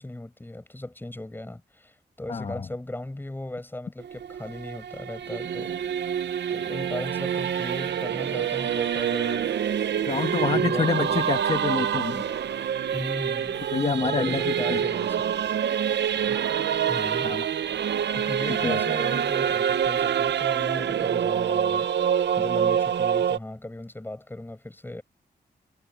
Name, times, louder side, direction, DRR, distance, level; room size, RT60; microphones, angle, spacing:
voice 1, 0.0-6.1 6.5-9.6 10.0-10.1 10.4-11.3 12.9-13.6 14.0-15.2 16.1-16.5 16.9-17.4 18.1-25.0, left 1 dB, 10° left, 7.1 m, -37 dB
voice 2, 2.3-2.6 10.1-12.4 13.7-14.4 14.7-14.8 17.2-17.4 18.6-18.8, left 5 dB, 35° left, 1.3 m, -27 dB
Singing / Musical instrument, 4.0-23.4, right 9 dB, 80° right, 0.8 m, -26 dB
wide cardioid pair, 145°, 18 cm